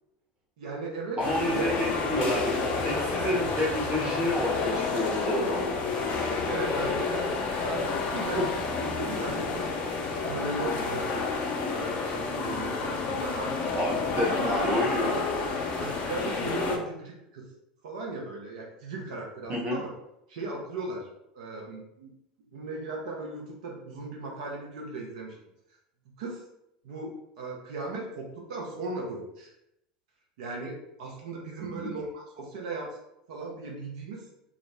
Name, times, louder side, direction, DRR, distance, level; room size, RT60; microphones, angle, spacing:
voice 1, 0.6-1.2 1.5-1.8 6.3-7.3 7.6-8.5 8.8-9.7 10.2-11.3 11.7-13.7 14.3-15.2 15.8-17.4 17.8-19.9 20.3-21.1 21.3-22.1 22.5-25.4 26.2-26.4 26.8-29.5 30.4-33.0 33.3-34.2, right 2 dB, 65° right, -1 dB, 0.6 m, -37 dB
sound 1, 1.2-16.8, left 4 dB, 40° left, 0.5 m, -30 dB
voice 2, 1.2-5.7 8.4-8.5 13.7-15.2 19.5-19.8 31.6-31.9, equal, 30° right, -2 dB, 1.0 m, -29 dB
2.4 x 2.0 x 3.3 m, 0.83 s
figure-of-eight pair, 80°, 4 cm